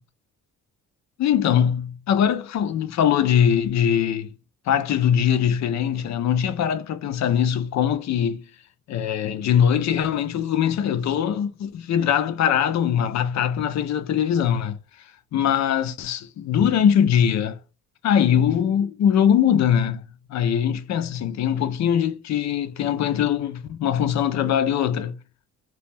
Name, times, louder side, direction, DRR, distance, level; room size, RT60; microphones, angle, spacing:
voice 1, 1.2-4.3 4.7-8.4 8.9-14.8 15.3-17.6 18.0-20.0 20.3-25.2, left 9 dB, 65° left, 0.6 m, -21 dB
2.9 x 2.3 x 3.5 m
cardioid pair, 90°, 30 cm